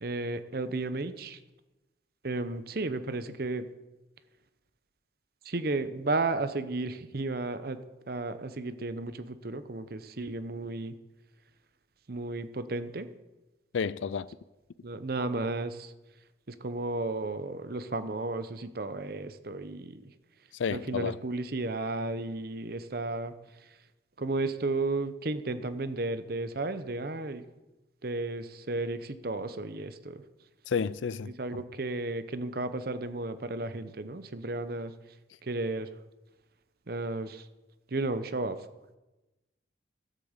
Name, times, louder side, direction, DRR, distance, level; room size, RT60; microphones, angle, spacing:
voice 1, 0.0-1.4 2.2-3.7 5.4-7.8 8.1-11.0 12.1-13.1 14.8-15.9 16.5-20.1 20.7-23.3 23.6-23.7 24.2-27.5 28.0-30.2 31.4-34.9 35.4-35.9 36.9-37.5 37.9-38.7, right 2 dB, 50° right, 0.8 m, -33 dB
voice 2, 13.7-14.3 20.5-21.2 30.7-31.3, left 6 dB, 80° left, 0.4 m, -31 dB
12.5 x 8.3 x 7.3 m
head